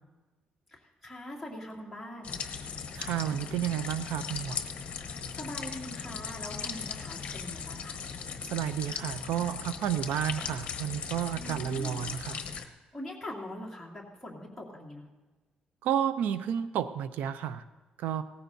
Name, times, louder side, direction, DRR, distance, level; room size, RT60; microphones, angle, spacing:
voice 1, 1.0-2.4 5.4-8.0 11.4-12.0 12.9-15.0, left 1 dB, ahead, -4 dB, 2.5 m, -42 dB
sound 1, 2.2-12.7, left 6 dB, 45° left, 1.0 m, -38 dB
voice 2, 3.0-4.6 8.5-12.4 15.8-17.6 18.0-18.2, right 10 dB, 90° right, 12 dB, 0.5 m, -31 dB
18.0 x 14.5 x 2.7 m, 1.2 s
cardioid pair, 165°, 3 cm